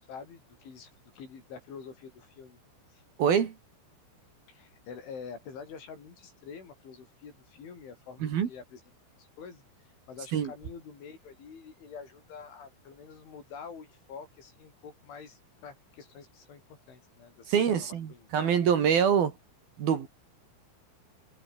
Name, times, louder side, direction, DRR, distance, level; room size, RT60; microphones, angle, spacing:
voice 1, 0.0-2.6 2.9-3.0 4.5-8.8 9.2-18.6, left 6 dB, 70° left, 8.0 m, -47 dB
voice 2, 3.2-3.5 8.2-8.5 10.3-10.5 17.5-19.3 19.8-20.1, right 8 dB, 55° right, 3.8 m, -25 dB
omnidirectional pair, 5.7 m